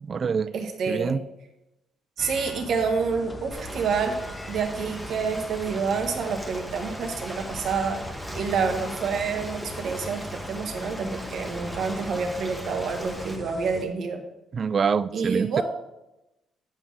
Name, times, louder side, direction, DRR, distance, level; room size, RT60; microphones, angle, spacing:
voice 1, 0.0-0.5 0.9-1.2 14.5-15.6, right 6 dB, 45° right, 18 dB, 0.3 m, -25 dB
voice 2, 0.5-1.2 2.2-4.2 4.5-8.0 8.3-14.2 15.1-15.6, right 5 dB, 70° right, 4 dB, 1.3 m, -28 dB
sound 1, 2.2-13.8, left 1 dB, 30° left, 0.9 m, -41 dB
Ocean, 3.5-13.4, equal, 5° left, 1.3 m, -38 dB
8.9 x 3.7 x 6.2 m, 0.94 s
cardioid pair, 90°, 0 cm